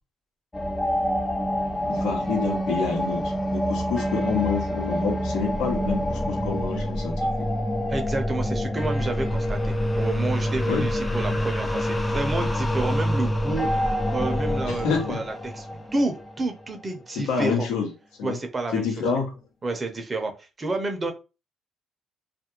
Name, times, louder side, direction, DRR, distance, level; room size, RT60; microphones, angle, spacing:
sound 1, 0.5-16.8, equal, 15° left, 0.4 m, -26 dB
voice 1, 1.8-7.2 10.6-10.9 14.6-15.2 17.1-17.9 18.2-18.4 18.7-19.3, left 5 dB, 85° left, 1 dB, 0.9 m, -28 dB
voice 2, 7.9-17.7 18.2-18.9 19.6-21.1, right 2 dB, 30° right, 5 dB, 0.6 m, -30 dB
2.4 x 2.1 x 2.9 m, 0.30 s
cardioid pair, 85°, 0 cm